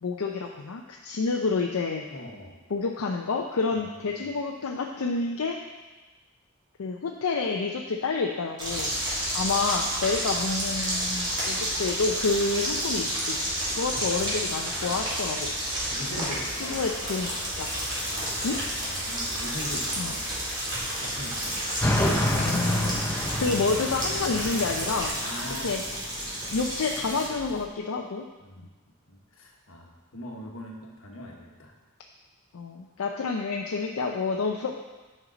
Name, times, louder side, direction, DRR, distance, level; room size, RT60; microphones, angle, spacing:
voice 1, 0.0-2.1 2.7-5.6 6.8-13.4 13.8-15.5 16.6-17.7 18.4-18.6 20.0-20.1 22.3-23.0 23.4-25.1 25.6-25.8 26.5-28.3 32.5-34.8, left 4 dB, 85° left, 1 dB, 0.5 m, -29 dB
voice 2, 2.1-2.6 3.7-4.2 13.9-14.3 15.9-16.8 18.1-20.3 21.0-21.6 25.2-25.8 28.4-28.7 29.1-31.7, left 1 dB, 70° left, 0 dB, 1.3 m, -41 dB
sound 1, 8.6-27.3, right 1 dB, 20° right, 1.9 m, -31 dB
sound 2, 8.6-25.1, equal, 65° right, 2.7 m, -37 dB
sound 3, 21.8-27.6, left 1 dB, 10° left, 0.6 m, -30 dB
9.0 x 5.4 x 3.9 m, 1.2 s
head